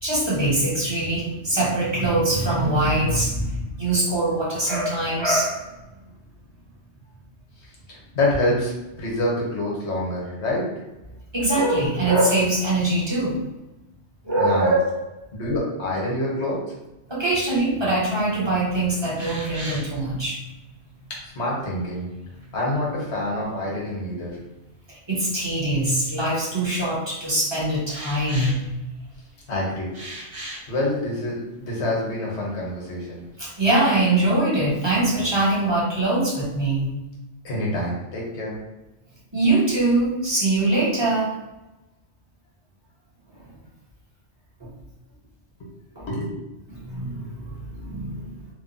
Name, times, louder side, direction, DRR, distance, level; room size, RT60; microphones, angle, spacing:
voice 1, 0.0-5.7 11.3-13.4 14.2-14.9 17.1-20.4 24.9-28.8 33.4-36.9 39.3-41.3 44.6-44.7 46.0-46.1 46.7-48.3, right 2 dB, 25° right, -7 dB, 0.8 m, -23 dB
voice 2, 7.9-8.7 9.0-10.7 14.4-14.8 15.3-16.6 21.2-22.1 22.5-24.4 29.5-29.9 30.7-33.2 37.4-38.6 45.6-45.7 46.1-46.4, left 1 dB, 65° left, -4 dB, 1.2 m, -26 dB
sound 1, 19.2-20.1 22.3-23.0 24.3-24.4 25.2-25.3 26.5-26.9 27.9-29.3 29.9-30.7 31.4-31.5 31.8-31.9 32.3-32.8 33.1-33.7, right 1 dB, 90° right, 1.2 m, -38 dB
2.9 x 2.2 x 2.5 m, 0.99 s
omnidirectional pair, 1.3 m